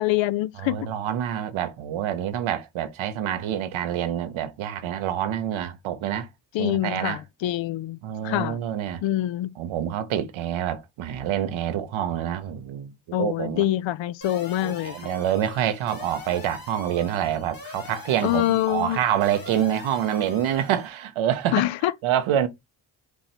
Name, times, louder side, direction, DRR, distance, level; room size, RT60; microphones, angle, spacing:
voice 1, 0.0-0.9 6.5-8.6 9.0-9.5 13.1-15.0 18.2-19.0 21.5-21.9, left 14 dB, 75° left, 0.5 m, -25 dB
voice 2, 0.6-6.3 6.6-7.2 8.0-9.0 9.6-13.6 14.6-21.7 22.0-22.5, right 10 dB, 85° right, 0.9 m, -27 dB
sound 1, 14.2-20.9, left 4 dB, 45° left, 2.0 m, -43 dB
4.6 x 2.7 x 4.3 m
supercardioid pair, 55°, 46 cm